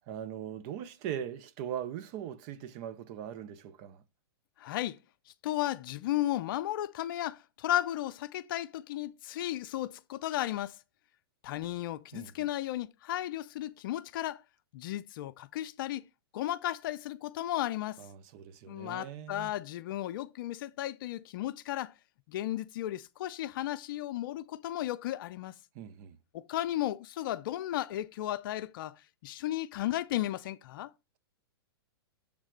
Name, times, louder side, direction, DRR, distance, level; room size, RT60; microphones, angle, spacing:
voice 1, 0.1-4.0 12.1-12.5 18.0-19.5 25.7-26.2, right 9 dB, 45° right, 0.7 m, -40 dB
voice 2, 4.6-5.0 5.4-10.8 11.4-14.4 14.7-16.1 16.3-18.0 18.7-21.9 22.3-25.5 26.3-29.0 29.2-30.9, left 13 dB, 55° left, 0.5 m, -34 dB
7.2 x 3.4 x 5.0 m
hypercardioid pair, 120°, 13 cm